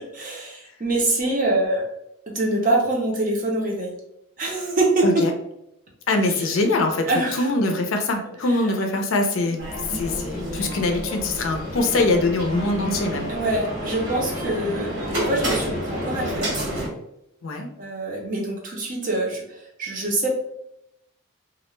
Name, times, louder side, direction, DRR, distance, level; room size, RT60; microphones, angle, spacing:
voice 1, 0.1-1.8 2.3-3.9 4.4-5.3 6.3-6.6 7.1-7.5 8.5-8.6 9.4-9.5 13.3-16.6 17.8-19.4 19.8-20.3, right 2 dB, 40° right, -1 dB, 0.6 m, -24 dB
voice 2, 6.1-9.6 9.9-13.3 17.4-17.7, left 2 dB, 70° left, 4 dB, 0.4 m, -23 dB
sound 1, 9.6-16.9, equal, 70° right, 1.1 m, -29 dB
2.3 x 2.1 x 3.1 m, 0.80 s
head